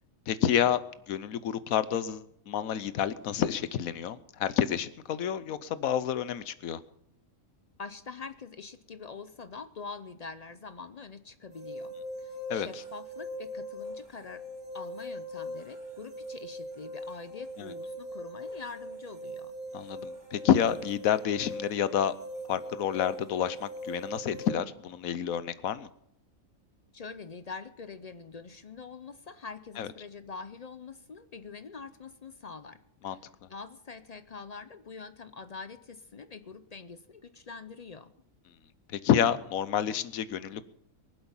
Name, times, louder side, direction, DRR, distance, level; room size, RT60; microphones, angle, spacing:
voice 1, 0.3-0.8 1.1-6.8 12.5-12.7 17.6-17.7 19.7-22.1 22.5-25.9 29.8-29.9 33.0-33.2 39.0-40.6, left 9 dB, 80° left, 15 dB, 1.2 m, -29 dB
voice 2, 7.8-14.4 14.7-19.5 26.9-38.1, left 4 dB, 55° left, 12 dB, 0.4 m, -44 dB
sound 1, 11.5-24.5, equal, 90° right, 2.9 m, -41 dB
23.0 x 7.9 x 5.6 m, 0.74 s
omnidirectional pair, 1.5 m